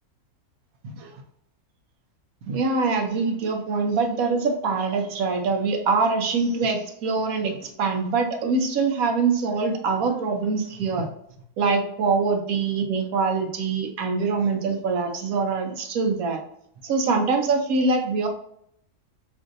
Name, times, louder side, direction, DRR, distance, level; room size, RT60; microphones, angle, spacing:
voice 1, 2.5-11.1 11.6-16.4 16.8-18.3, right 4 dB, 75° right, 4 dB, 1.2 m, -24 dB
5.6 x 2.6 x 2.5 m, 0.71 s
omnidirectional pair, 1.5 m